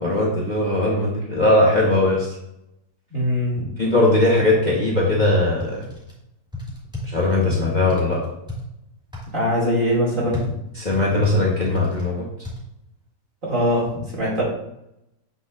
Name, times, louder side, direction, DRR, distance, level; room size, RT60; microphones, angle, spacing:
voice 1, 0.0-2.3 3.8-5.8 7.1-8.2 10.8-12.2, left 2 dB, 30° left, -4 dB, 1.2 m, -19 dB
voice 2, 3.1-3.7 9.3-10.5 13.4-14.4, equal, 50° right, -5 dB, 2.9 m, -22 dB
sound 1, 5.6-6.1 6.5-7.4 7.9-8.6 9.1-9.3 10.3-12.1 12.4-12.6, left 2 dB, 5° right, 2.6 m, -33 dB
7.8 x 6.2 x 2.5 m, 0.81 s
omnidirectional pair, 1.8 m